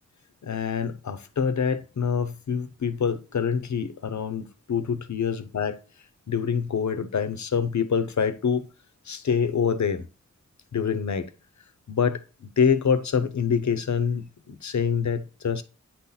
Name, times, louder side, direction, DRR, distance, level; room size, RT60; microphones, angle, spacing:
voice 1, 0.4-5.8 6.3-8.7 9.1-10.1 10.7-11.3 11.9-15.6, left 6 dB, 75° left, 0.7 m, -26 dB
9.0 x 4.2 x 3.9 m
wide cardioid pair, 90°, 29 cm